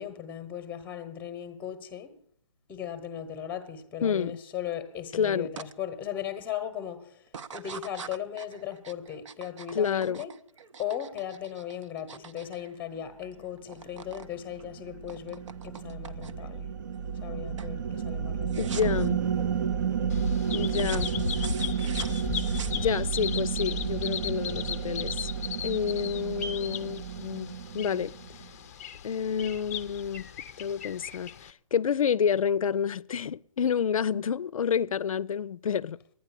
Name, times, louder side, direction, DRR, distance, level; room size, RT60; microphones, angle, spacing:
voice 1, 0.0-2.2 2.7-7.2 7.5-10.3 10.8-16.7 17.2-18.7, left 9 dB, 10° left, 0.9 m, -37 dB
voice 2, 4.0-4.4 5.1-5.5 9.7-10.2 18.6-19.2 20.5-21.1 22.8-25.3 25.6-28.1 29.0-30.3 30.6-36.0, left 7 dB, 80° left, 0.5 m, -29 dB
sound 1, 5.6-5.7 6.2-6.6 7.3-13.3 13.6-14.3 14.6-16.6 17.0-17.3 17.6-17.8 18.5-19.1 20.7-23.2, right 6 dB, 65° right, 0.7 m, -44 dB
sound 2, 14.0-28.5, right 7 dB, 35° right, 0.4 m, -32 dB
Bird vocalization bird call bird song, 20.1-31.5, left 8 dB, 30° left, 0.5 m, -37 dB
12.0 x 9.6 x 8.3 m
hypercardioid pair, 160°, 17 cm